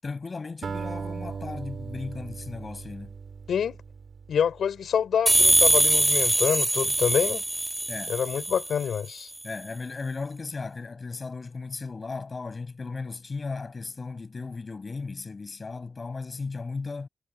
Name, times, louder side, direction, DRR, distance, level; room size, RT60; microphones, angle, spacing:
voice 1, 0.0-3.1 7.9-8.2 9.4-17.1, left 4 dB, 45° left, 7.4 m, -36 dB
Acoustic guitar, 0.6-5.1, right 5 dB, 65° right, 2.2 m, -38 dB
voice 2, 4.3-7.4 8.1-9.3, left 8 dB, 85° left, 3.4 m, -26 dB
sound 1, 5.3-8.8, right 1 dB, 15° right, 2.0 m, -22 dB
cardioid pair, 65°, 0 cm